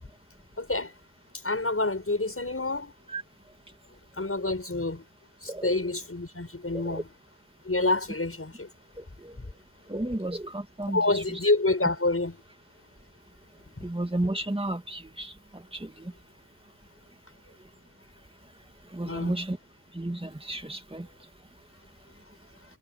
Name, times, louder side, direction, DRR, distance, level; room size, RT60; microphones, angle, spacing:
voice 1, 0.6-0.9 1.4-2.9 4.2-5.0 5.4-7.0 7.6-8.7 10.9-12.3 13.8-13.9 19.0-19.3, left 2 dB, 30° left, 7.1 m, -27 dB
voice 2, 5.5-5.9 6.7-7.0 8.9-9.4 9.9-11.4 13.8-16.1 18.8-19.6 19.9-21.3, right 1 dB, 15° right, 2.6 m, -33 dB
wide cardioid pair, 80°, 43 cm